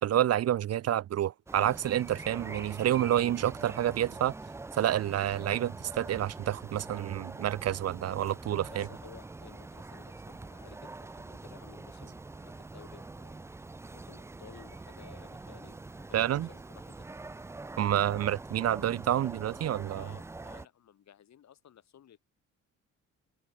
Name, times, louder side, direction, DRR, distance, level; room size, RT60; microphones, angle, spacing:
voice 1, 0.0-4.3 4.8-8.9 16.1-16.5 17.8-20.1, right 11 dB, 55° right, 0.7 m, -28 dB
sound 1, 1.5-20.7, right 3 dB, 10° right, 0.4 m, -44 dB
voice 2, 8.7-13.5 13.9-17.1 19.9-22.2, left 10 dB, 65° left, 5.9 m, -55 dB
open air
cardioid pair, 90°, 30 cm